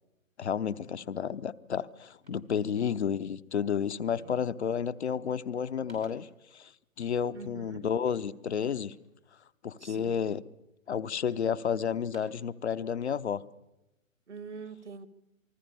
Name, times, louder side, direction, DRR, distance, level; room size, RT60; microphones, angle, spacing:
voice 1, 0.4-6.3 6.5-6.7 7.0-8.9 9.6-10.4 10.9-13.4, left 7 dB, 55° left, 14 dB, 0.9 m, -31 dB
sound 1, 1.3-1.5 1.8-3.3 3.9-4.3 4.6-5.1 5.4-6.5 8.0-9.2 9.7-10.3 10.9-11.5 11.9-12.6, right 1 dB, 90° right, 6.0 m, -60 dB
voice 2, 7.3-7.9 9.8-10.2 14.3-15.1, right 5 dB, 60° right, 17 dB, 1.5 m, -45 dB
28.0 x 20.5 x 6.9 m, 0.95 s
figure-of-eight pair, 125°, 40 cm